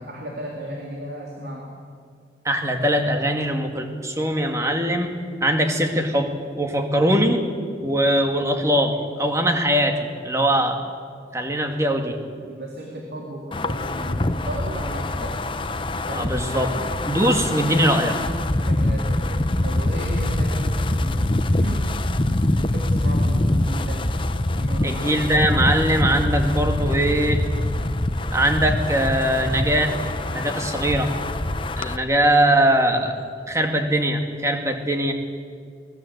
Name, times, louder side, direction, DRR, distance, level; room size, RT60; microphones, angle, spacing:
voice 1, 0.0-1.7 12.4-15.4 16.1-16.7 18.6-19.3 19.6-21.3 21.6-22.0 22.5-24.0 24.5-25.0, right 1 dB, 65° right, -2 dB, 3.2 m, -34 dB
voice 2, 2.5-5.1 5.4-7.4 7.8-10.8 11.3-12.2 16.1-16.7 17.1-18.2 24.8-27.4 28.3-30.0 30.3-31.1 31.8-33.2 33.5-35.1, right 1 dB, 15° right, 4 dB, 2.0 m, -21 dB
Wind, 13.5-32.0, left 1 dB, 30° left, 0.8 m, -24 dB
23.5 x 19.0 x 8.1 m, 2.2 s
head